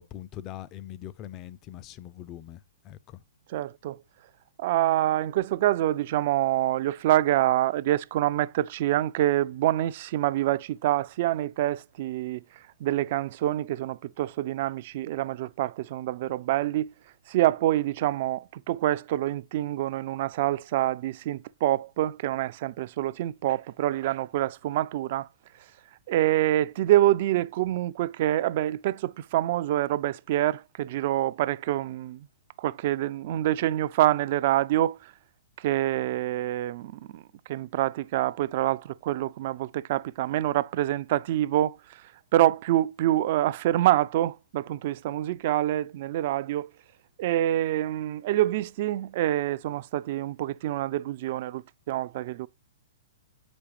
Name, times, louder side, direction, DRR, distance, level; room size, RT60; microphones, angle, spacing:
voice 1, 0.0-3.2, left 12 dB, 30° left, 0.5 m, -42 dB
voice 2, 3.5-4.0 4.6-12.4 12.8-16.9 17.3-25.3 26.1-32.3 32.6-35.0 35.6-37.2 37.5-42.0 42.3-46.7 47.2-52.5, right 14 dB, 50° right, 0.3 m, -26 dB
8.2 x 5.1 x 3.0 m
figure-of-eight pair, 115°, 0 cm